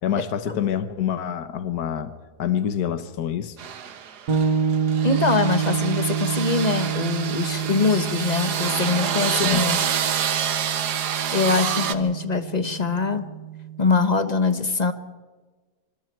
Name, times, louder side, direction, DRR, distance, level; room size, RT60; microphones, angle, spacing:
voice 1, 0.0-2.1 2.4-3.6 9.4-9.6, left 9 dB, 75° left, 10 dB, 1.7 m, -26 dB
sound 1, 3.6-11.9, right 8 dB, 80° right, 1.7 m, -27 dB
sound 2, 4.3-14.0, right 7 dB, 65° right, 2.0 m, -28 dB
voice 2, 5.0-9.8 11.3-13.3 13.8-14.9, left 4 dB, 30° left, 9 dB, 1.2 m, -23 dB
25.0 x 25.0 x 4.6 m, 1.3 s
omnidirectional pair, 1.7 m